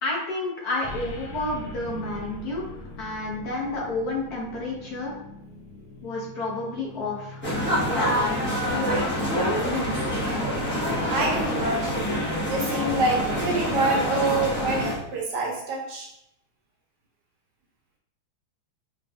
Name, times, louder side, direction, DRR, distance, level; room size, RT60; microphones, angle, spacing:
voice 1, 0.0-2.7 3.0-5.1 6.0-7.4 7.9-8.9 9.3-10.1, left 2 dB, 55° left, -3 dB, 1.3 m, -30 dB
sound 1, 0.8-15.2, left 2 dB, 75° left, 1.3 m, -43 dB
sound 2, 7.4-15.0, equal, 15° left, 0.3 m, -26 dB
voice 2, 11.1-12.1 12.4-16.1, right 2 dB, 65° right, -1 dB, 1.2 m, -26 dB
4.9 x 3.1 x 2.4 m, 0.80 s
omnidirectional pair, 2.3 m